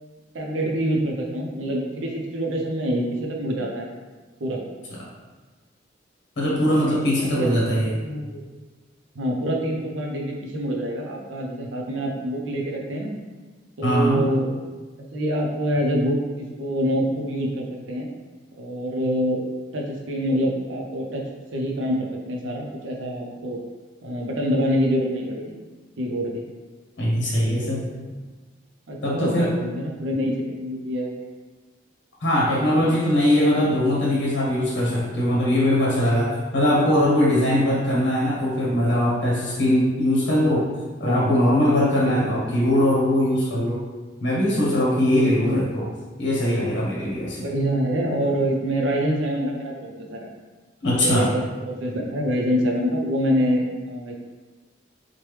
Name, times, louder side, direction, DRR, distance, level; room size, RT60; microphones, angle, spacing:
voice 1, 0.3-3.9 4.4-4.6 6.7-8.5 9.2-13.1 13.8-14.5 15.1-18.1 18.6-19.4 19.7-21.2 21.5-23.6 24.0-25.6 26.0-26.4 27.3-27.8 28.9-31.1 32.6-32.9 37.6-37.8 41.0-41.3 42.0-42.4 45.1-45.6 47.4-50.3 51.0-54.2, equal, 80° right, 0 dB, 0.5 m, -26 dB
voice 2, 6.4-7.9 13.8-14.3 27.0-27.8 29.0-29.5 32.2-40.7 41.0-43.8 44.2-45.9 46.2-47.5 50.8-51.3, left 1 dB, 65° left, -5 dB, 0.7 m, -21 dB
3.1 x 2.1 x 3.1 m, 1.3 s
head